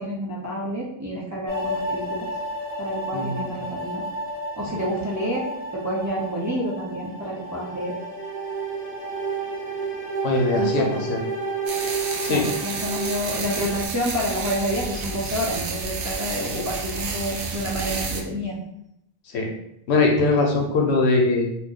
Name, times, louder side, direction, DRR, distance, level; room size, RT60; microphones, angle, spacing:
voice 1, 0.0-2.3 2.8-4.0 4.6-5.4 5.7-7.9 10.6-11.0 12.3-18.6, equal, 25° right, -5 dB, 0.4 m, -29 dB
sound 1, 1.5-13.9, right 3 dB, 15° left, 0.7 m, -31 dB
voice 2, 3.1-3.7 4.7-4.8 10.2-11.2 12.2-12.5 16.3-16.6 19.3-19.5 19.9-21.4, left 3 dB, 80° left, 0 dB, 1.0 m, -22 dB
sound 2, 11.7-18.2, right 4 dB, 65° right, 0.7 m, -31 dB
3.1 x 2.0 x 3.6 m, 0.79 s
omnidirectional pair, 1.1 m